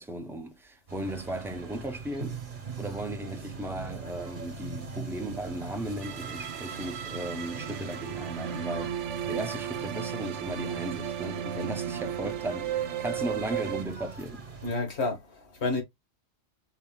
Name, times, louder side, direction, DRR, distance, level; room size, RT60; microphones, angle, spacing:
voice 1, 0.0-2.4 2.8-14.5, right 1 dB, 5° right, 0.6 m, -36 dB
sound 1, 0.9-14.8, right 5 dB, 45° right, 1.2 m, -42 dB
sound 2, 6.0-13.8, right 9 dB, 80° right, 0.9 m, -35 dB
voice 2, 14.6-15.8, left 3 dB, 65° left, 1.8 m, -30 dB
4.9 x 2.7 x 3.6 m
omnidirectional pair, 1.2 m